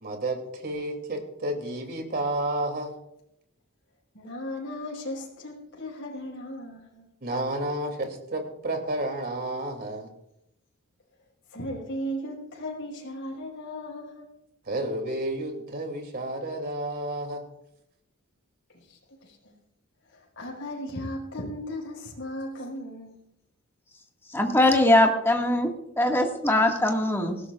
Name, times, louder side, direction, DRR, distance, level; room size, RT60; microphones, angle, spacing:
voice 1, 0.0-2.9 7.2-10.1 14.6-17.4, right 1 dB, 50° right, 4 dB, 2.8 m, -31 dB
voice 2, 4.1-7.1 11.5-14.3 18.7-19.5 20.1-23.2, equal, 60° left, -2 dB, 5.4 m, -36 dB
voice 3, 24.3-27.4, left 1 dB, 10° left, 1 dB, 1.9 m, -22 dB
20.0 x 16.5 x 2.5 m, 0.79 s
head